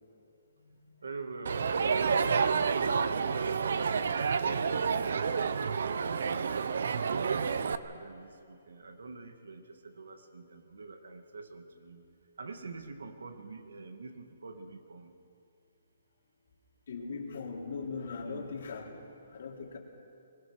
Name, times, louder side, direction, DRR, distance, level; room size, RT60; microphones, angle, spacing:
voice 1, 1.0-4.2 4.5-6.4 7.0-12.0 12.4-15.1 18.2-18.7, right 3 dB, 90° right, 7 dB, 1.9 m, -45 dB
Crowd, 1.4-7.8, right 5 dB, 55° right, 0.8 m, -29 dB
voice 2, 16.9-18.9 19.3-19.8, left 5 dB, 55° left, -1 dB, 3.4 m, -39 dB
22.5 x 20.5 x 6.4 m, 2.6 s
hypercardioid pair, 175°, 0 cm